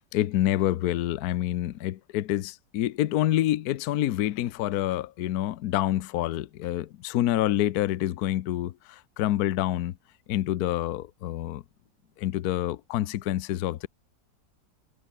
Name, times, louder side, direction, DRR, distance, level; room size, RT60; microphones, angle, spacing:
voice 1, 0.1-10.0 10.3-11.6 12.2-13.9, left 13 dB, 65° left, 1.1 m, -27 dB
omnidirectional pair, 1.9 m